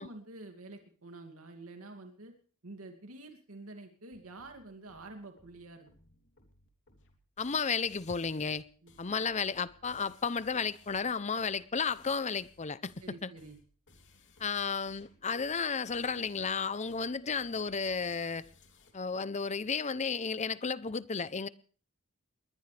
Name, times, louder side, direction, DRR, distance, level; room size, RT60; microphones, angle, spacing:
voice 1, 0.0-2.3 2.6-5.9 8.8-8.9 13.0-13.6, right 2 dB, 70° right, 2.6 m, -48 dB
sound 1, 4.1-18.9, left 2 dB, 55° left, 3.1 m, -62 dB
voice 2, 7.4-8.7 9.0-13.3 14.4-18.4 18.9-21.5, left 5 dB, 30° left, 0.7 m, -33 dB
20.5 x 20.5 x 3.4 m
head